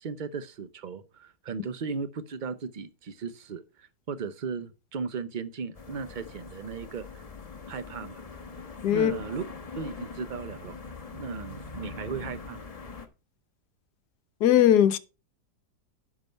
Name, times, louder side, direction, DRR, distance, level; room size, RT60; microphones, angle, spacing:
voice 1, 0.0-7.2 7.7-8.2 8.9-9.4 9.7-10.8 11.1-12.7, right 5 dB, 45° right, 0.6 m, -36 dB
sound 1, 5.7-13.1, left 4 dB, 25° left, 1.1 m, -42 dB
voice 2, 14.4-15.0, left 11 dB, 75° left, 1.3 m, -19 dB
10.5 x 6.2 x 4.4 m
omnidirectional pair, 1.7 m